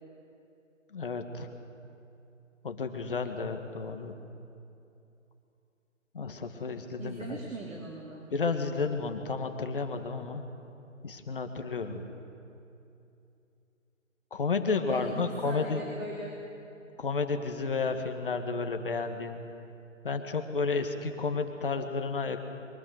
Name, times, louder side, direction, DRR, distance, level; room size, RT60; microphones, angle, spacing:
voice 1, 0.9-1.5 2.6-4.2 6.1-7.4 8.3-10.4 11.0-12.0 14.3-15.8 17.0-19.4 20.0-22.4, left 4 dB, 40° left, 6 dB, 1.8 m, -32 dB
voice 2, 7.0-8.2 14.9-16.3, right 2 dB, 75° right, -2 dB, 3.9 m, -39 dB
23.0 x 22.0 x 6.5 m, 2.7 s
figure-of-eight pair, 165°, 39 cm